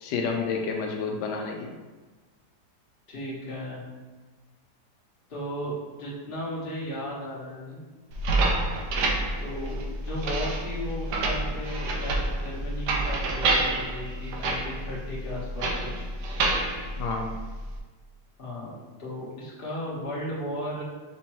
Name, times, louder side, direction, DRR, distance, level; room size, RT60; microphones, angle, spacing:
voice 1, 0.0-1.7 17.0-17.4, left 4 dB, 85° left, 2 dB, 1.2 m, -29 dB
voice 2, 3.1-3.8 5.3-7.8 9.4-16.1 18.4-20.8, equal, 35° left, -7 dB, 1.4 m, -35 dB
sound 1, 8.1-17.8, right 2 dB, 85° right, 1.2 m, -28 dB
6.0 x 2.8 x 3.0 m, 1.3 s
omnidirectional pair, 1.8 m